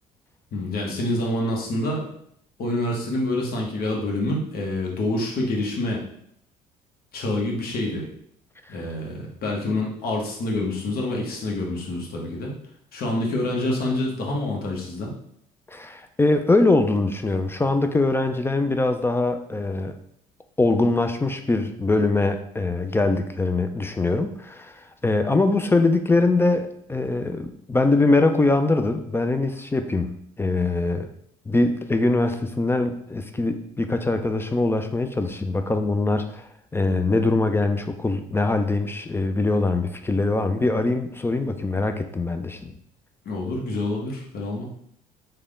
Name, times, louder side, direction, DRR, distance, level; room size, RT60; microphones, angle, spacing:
voice 1, 0.5-2.0 2.6-6.0 7.1-8.1 8.7-12.5 12.9-15.1 43.2-44.7, left 1 dB, 50° left, -1 dB, 1.0 m, -27 dB
voice 2, 15.7-20.0 20.6-31.1 31.5-36.4 36.7-42.7, left 2 dB, 10° left, 8 dB, 0.3 m, -22 dB
3.3 x 2.2 x 3.6 m, 0.68 s
hypercardioid pair, 60°, 19 cm